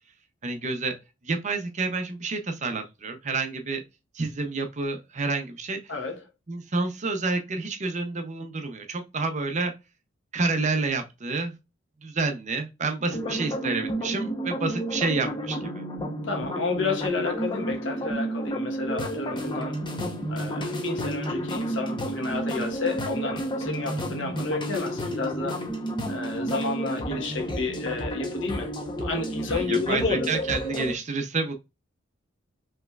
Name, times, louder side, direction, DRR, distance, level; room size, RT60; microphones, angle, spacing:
voice 1, 0.4-1.0 1.3-3.8 4.1-5.8 6.5-9.7 10.3-11.5 12.0-15.8 29.5-31.5, right 3 dB, 40° right, 0.6 m, -29 dB
voice 2, 5.9-6.2 13.1-13.4 16.2-19.8 20.3-25.6 26.1-28.7 29.0-30.4, left 3 dB, 75° left, 1.2 m, -31 dB
sound 1, 13.1-30.9, right 1 dB, 25° left, 0.9 m, -31 dB
5.5 x 3.1 x 2.4 m
head